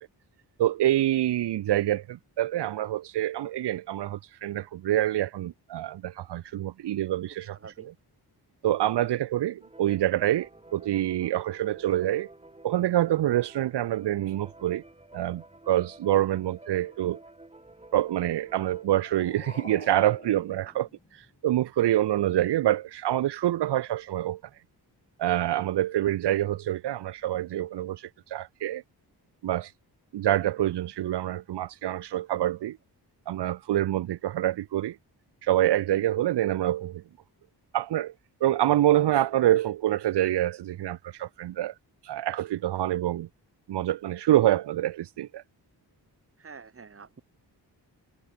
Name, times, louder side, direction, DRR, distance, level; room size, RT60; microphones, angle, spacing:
voice 1, 0.6-7.6 7.8-7.9 8.6-12.3 12.6-14.8 15.1-17.2 17.9-24.4 25.2-28.8 29.4-29.7 30.1-32.8 33.3-35.0 35.4-37.0 37.7-38.1 38.4-41.7 42.0-43.3 43.7-45.4, right 13 dB, 80° right, 0.7 m, -26 dB
voice 2, 7.5-7.9 46.4-47.2, right 5 dB, 35° right, 1.8 m, -47 dB
sound 1, 9.6-18.9, right 2 dB, 15° right, 4.8 m, -51 dB
sound 2, 18.6-21.6, left 3 dB, 20° left, 2.3 m, -48 dB
wide cardioid pair, 125°, 40 cm